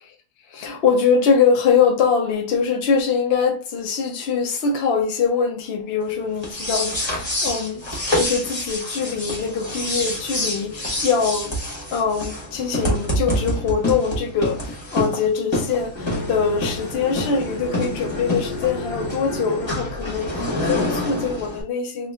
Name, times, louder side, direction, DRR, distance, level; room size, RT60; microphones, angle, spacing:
voice 1, 0.5-11.6 11.9-22.1, left 6 dB, 65° left, 0.6 m, -23 dB
sound 1, 6.4-21.6, left 1 dB, 20° left, 0.8 m, -27 dB
2.9 x 2.4 x 3.3 m
omnidirectional pair, 1.8 m